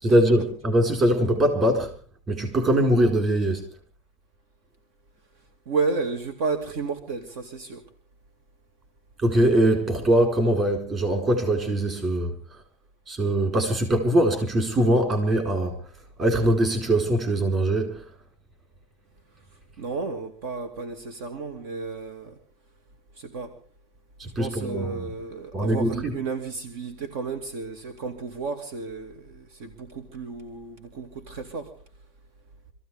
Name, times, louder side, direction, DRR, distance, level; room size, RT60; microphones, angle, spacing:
voice 1, 0.0-1.9 2.3-3.6 9.2-12.3 13.1-15.7 16.2-18.0 24.2-25.1 25.5-26.1, right 1 dB, 25° right, 4.7 m, -22 dB
voice 2, 5.7-7.8 19.8-22.3 23.2-23.5 24.4-31.7, right 4 dB, 60° right, 2.5 m, -32 dB
26.0 x 15.0 x 3.6 m
supercardioid pair, 165°, 0 cm